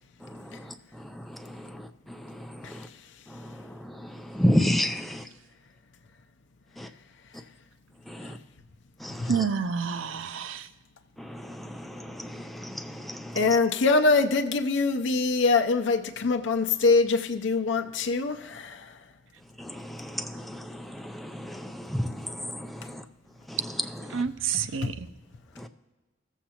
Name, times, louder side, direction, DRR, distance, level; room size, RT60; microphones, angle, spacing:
voice 1, 0.3-0.7 1.1-1.8 2.1-2.9 3.3-3.6 3.8-5.2 6.8-6.9 8.1-8.4 9.0-9.3 11.2-13.4 19.6-23.0 23.5-23.6 24.1-24.2 25.6-25.7, equal, ahead, 5 dB, 0.4 m, -32 dB
voice 2, 9.3-10.7 24.1-25.1, right 6 dB, 90° right, 11 dB, 0.5 m, -29 dB
voice 3, 13.3-19.0 24.5-24.9, left 3 dB, 65° left, 6 dB, 0.5 m, -24 dB
16.0 x 7.3 x 2.8 m, 1.2 s
head